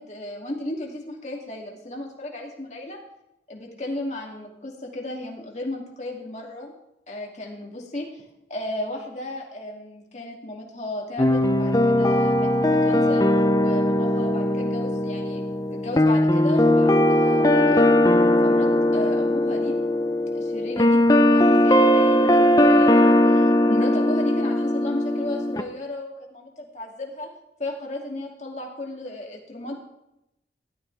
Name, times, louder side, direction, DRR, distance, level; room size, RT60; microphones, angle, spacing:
voice 1, 0.0-3.0 3.5-6.7 7.1-8.2 8.5-15.4 15.7-18.0 18.4-19.8 20.3-27.3 27.6-29.7, left 1 dB, 40° left, -1 dB, 2.7 m, -34 dB
sound 1, 11.2-25.6, left 1 dB, 20° left, 0.7 m, -19 dB
16.0 x 12.5 x 3.5 m, 0.85 s
head